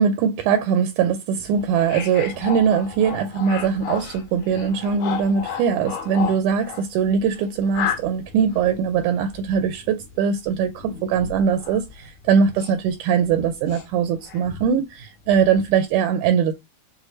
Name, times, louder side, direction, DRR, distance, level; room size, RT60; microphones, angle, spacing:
voice 1, 0.0-16.5, right 7 dB, 80° right, 1.9 m, -21 dB
sound 1, 1.4-12.9 13.2-14.7 15.3-15.8, left 8 dB, 80° left, 2.7 m, -34 dB
6.3 x 2.2 x 3.0 m
omnidirectional pair, 3.8 m